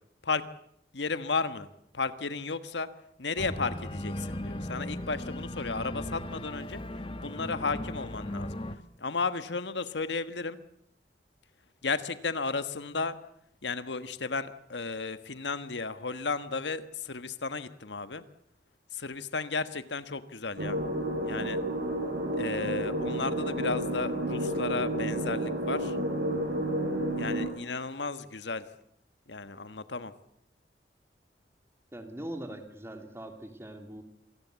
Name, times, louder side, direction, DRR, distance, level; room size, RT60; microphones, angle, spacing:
voice 1, 0.9-1.7 1.9-2.9 3.2-6.8 7.2-8.6 9.0-10.6 11.8-13.2 13.6-18.2 18.9-20.8 21.2-21.6 22.3-26.0 27.2-28.6 29.3-30.1, left 4 dB, 90° left, 12 dB, 1.4 m, -33 dB
Organ, 3.4-8.8, left 1 dB, 30° left, 1.2 m, -37 dB
sound 1, 20.6-27.5, right 1 dB, 70° right, 5.3 m, -31 dB
voice 2, 31.9-34.0, right 1 dB, 15° right, 6 dB, 2.9 m, -41 dB
26.5 x 18.5 x 8.2 m, 0.71 s
head